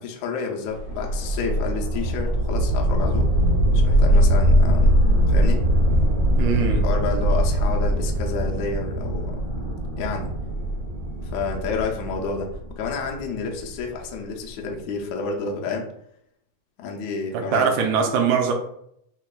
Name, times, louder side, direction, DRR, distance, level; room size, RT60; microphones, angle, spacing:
voice 1, 0.0-3.3 3.7-5.7 6.8-9.4 10.0-10.3 11.2-15.9 16.8-17.6, left 4 dB, 80° left, 1 dB, 1.6 m, -30 dB
sound 1, 0.7-13.8, equal, 60° right, 0.9 m, -21 dB
voice 2, 6.4-6.9 17.3-18.5, right 6 dB, 80° right, 2 dB, 1.8 m, -22 dB
5.5 x 2.2 x 2.3 m, 0.72 s
omnidirectional pair, 3.7 m